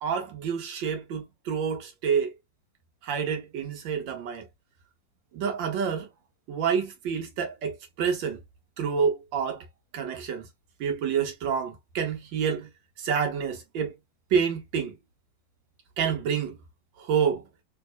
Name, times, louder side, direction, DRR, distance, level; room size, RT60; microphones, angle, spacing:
voice 1, 0.0-2.3 3.0-4.4 5.3-6.1 6.5-8.4 8.8-9.6 9.9-10.4 10.8-12.7 13.0-13.9 14.3-14.9 16.0-16.6 17.0-17.4, right 6 dB, 70° right, 1.3 m, -28 dB
3.4 x 2.8 x 2.3 m
omnidirectional pair, 2.4 m